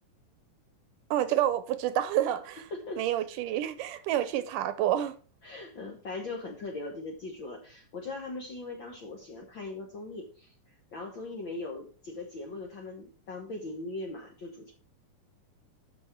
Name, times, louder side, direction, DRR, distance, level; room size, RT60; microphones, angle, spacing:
voice 1, 1.1-2.6 3.0-5.1, right 12 dB, 80° right, 2.1 m, -28 dB
voice 2, 2.7-3.0 5.4-14.7, left 2 dB, 55° left, 1.3 m, -40 dB
13.0 x 5.3 x 4.4 m
omnidirectional pair, 4.0 m